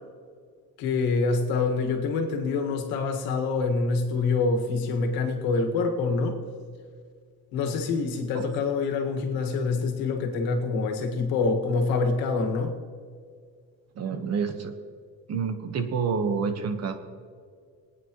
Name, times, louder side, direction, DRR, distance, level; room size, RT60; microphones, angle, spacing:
voice 1, 0.8-6.4 7.5-12.7, left 4 dB, 85° left, 3 dB, 1.8 m, -26 dB
voice 2, 13.9-14.7 15.3-17.0, right 5 dB, 50° right, 8 dB, 1.3 m, -28 dB
24.0 x 9.3 x 3.1 m, 2.1 s
cardioid pair, 140°, 34 cm